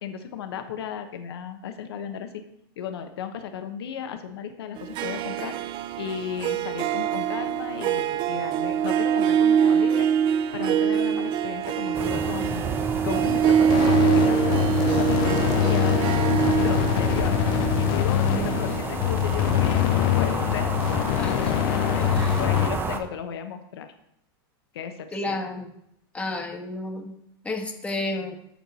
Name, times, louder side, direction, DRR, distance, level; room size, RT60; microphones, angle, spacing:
voice 1, 0.0-2.4 2.8-5.5 6.0-10.1 10.5-12.7 13.0-17.3 17.8-20.7 21.2-22.1 22.4-23.9 24.7-25.4, left 8 dB, 85° left, 7 dB, 1.0 m, -35 dB
Harp, 4.8-20.1, right 8 dB, 40° right, 0.5 m, -24 dB
sound 1, 11.9-23.0, right 4 dB, 15° right, 0.8 m, -31 dB
sound 2, 13.7-22.7, left 12 dB, 55° left, 0.5 m, -24 dB
voice 2, 18.3-18.7 21.1-21.5 22.1-22.3 25.1-25.7 26.1-27.1 27.4-28.3, left 2 dB, 10° left, 2 dB, 1.4 m, -31 dB
13.5 x 4.6 x 4.2 m, 0.76 s
supercardioid pair, 125°, 13 cm